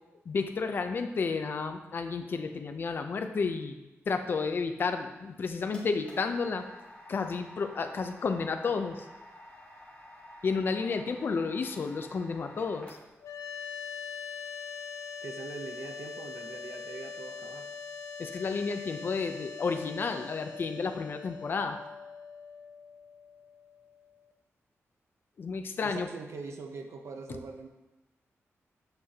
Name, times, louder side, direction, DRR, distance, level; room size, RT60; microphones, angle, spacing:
voice 1, 0.3-3.8 4.1-6.7 7.1-9.1 10.4-13.0 18.2-21.8 25.4-26.1 27.3-27.4, left 4 dB, 45° left, 7 dB, 0.5 m, -31 dB
sound 1, 5.2-13.3, left 1 dB, 25° left, 1.6 m, -51 dB
sound 2, 13.2-24.3, left 5 dB, 85° left, 0.6 m, -42 dB
voice 2, 15.2-17.7 25.8-27.7, right 4 dB, 65° right, 4 dB, 0.7 m, -42 dB
7.8 x 6.3 x 2.9 m, 1.0 s
wide cardioid pair, 175°, 5 cm